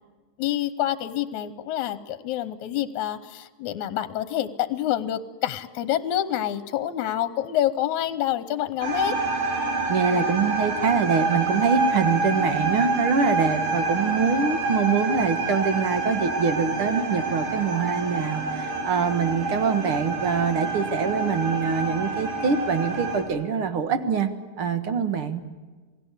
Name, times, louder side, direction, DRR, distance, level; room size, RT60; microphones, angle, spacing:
voice 1, 0.4-9.2, left 12 dB, 75° left, 14 dB, 2.2 m, -27 dB
sound 1, 8.8-23.2, right 3 dB, 70° right, 5.7 m, -27 dB
voice 2, 9.9-25.5, right 5 dB, 50° right, 10 dB, 1.9 m, -24 dB
28.0 x 19.5 x 8.2 m, 1.3 s
omnidirectional pair, 3.6 m